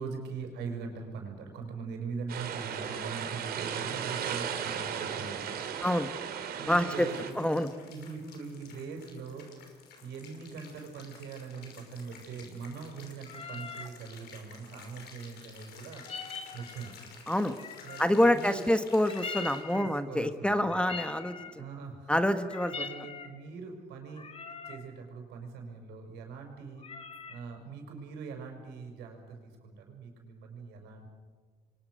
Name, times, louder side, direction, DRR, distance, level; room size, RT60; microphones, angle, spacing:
voice 1, 0.0-5.7 6.6-7.3 7.8-16.0 16.5-17.0 17.8-18.6 19.7-20.8 21.5-22.2 22.7-24.3 24.6-26.8 27.3-31.1, right 5 dB, 80° right, 3 dB, 6.3 m, -42 dB
sound 1, 2.3-7.3, right 8 dB, 65° right, 3.2 m, -36 dB
voice 2, 6.7-7.1 7.4-7.7 17.3-17.5 18.0-21.3 22.1-22.8, left 1 dB, 5° left, 9 dB, 1.3 m, -26 dB
sound 2, 6.9-19.6, left 5 dB, 75° left, 5.7 m, -52 dB
sound 3, 13.3-14.0 15.9-17.0 17.6-18.5 19.1-20.0 20.7-21.6 22.3-23.3 24.1-24.9 26.8-27.4, left 5 dB, 35° left, 2.0 m, -42 dB
29.0 x 24.0 x 6.5 m, 1.5 s
cardioid pair, 110°, 17 cm